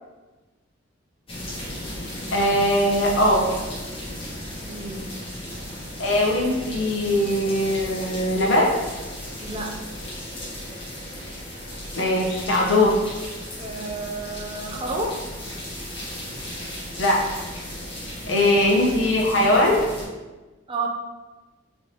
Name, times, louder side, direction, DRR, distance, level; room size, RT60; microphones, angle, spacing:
sound 1, 1.3-20.1, left 1 dB, 30° left, 1.1 m, -35 dB
voice 1, 2.3-3.4 6.0-8.7 12.0-13.0 17.0-17.2 18.3-19.8, left 1 dB, 65° left, -2 dB, 0.9 m, -20 dB
voice 2, 4.6-5.1 9.4-9.8 13.6-15.2 18.2-18.5 20.7-20.9, right 2 dB, 25° right, 1 dB, 0.4 m, -31 dB
4.6 x 3.2 x 2.8 m, 1.2 s
head